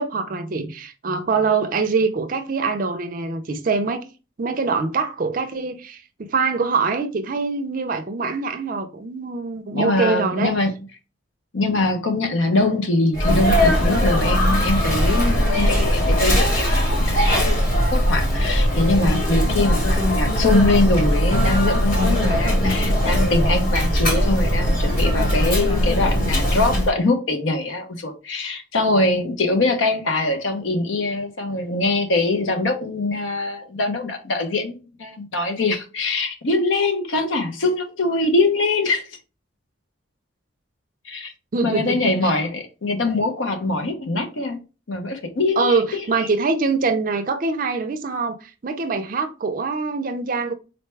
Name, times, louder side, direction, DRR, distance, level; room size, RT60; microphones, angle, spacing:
voice 1, 0.0-4.1 4.4-10.5 41.5-42.3 45.6-50.5, right 4 dB, 45° right, 0.4 m, -24 dB
voice 2, 9.7-10.7 11.5-17.6 17.9-39.0 41.1-41.3 41.6-44.6 44.9-46.3, left 2 dB, 80° left, 0.7 m, -23 dB
Sneeze, 13.1-26.9, equal, 45° left, 1.2 m, -19 dB
4.0 x 2.2 x 3.2 m
head